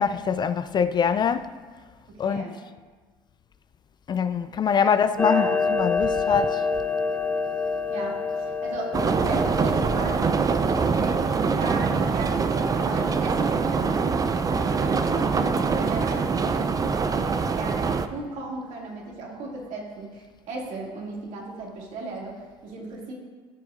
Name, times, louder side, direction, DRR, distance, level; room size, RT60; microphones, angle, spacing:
voice 1, 0.0-1.6 2.2-2.4 4.1-6.7, left 7 dB, 35° left, 0.3 m, -24 dB
voice 2, 2.1-2.5 4.8-4.9 5.2-5.5 7.9-9.0 9.2-11.2 11.6-14.2 14.5-16.7 17.1-23.1, right 2 dB, 65° right, 2.3 m, -37 dB
Clock, 5.2-10.2, left 4 dB, 10° left, 0.8 m, -26 dB
sound 1, 8.9-18.1, right 5 dB, 25° right, 0.5 m, -24 dB
13.5 x 7.1 x 2.5 m
supercardioid pair, 85°, 14 cm